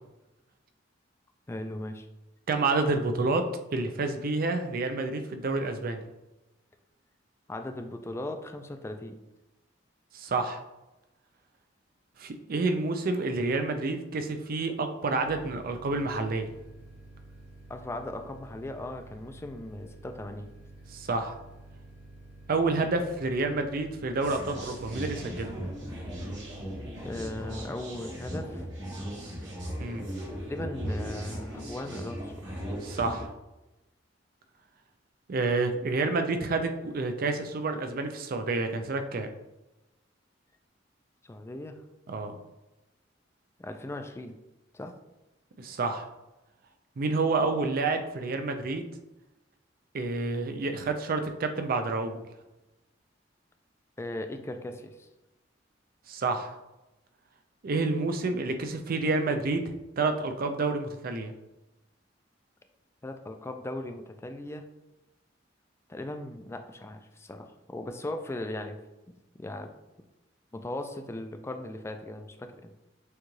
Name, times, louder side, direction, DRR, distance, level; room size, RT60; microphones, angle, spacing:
voice 1, 1.5-2.1 7.5-9.2 17.7-20.5 27.0-28.7 30.5-32.3 41.2-41.8 43.6-44.3 44.7-44.9 54.0-55.1 63.0-64.6 65.9-68.8 69.1-69.7 70.5-72.7, left 1 dB, 15° left, 6 dB, 0.3 m, -38 dB
voice 2, 2.5-6.0 10.1-10.6 12.2-16.5 20.9-21.3 22.5-25.5 29.8-30.0 32.8-33.3 35.3-39.3 42.1-42.4 45.6-46.1 47.0-48.9 49.9-52.2 56.1-56.6 57.6-59.6 60.0-61.3, right 3 dB, 50° right, 6 dB, 0.5 m, -29 dB
sound 1, 15.2-27.4, right 2 dB, 35° right, 0.9 m, -50 dB
sound 2, 24.2-33.2, equal, 70° right, 1.4 m, -37 dB
6.4 x 2.3 x 3.1 m, 1.0 s
head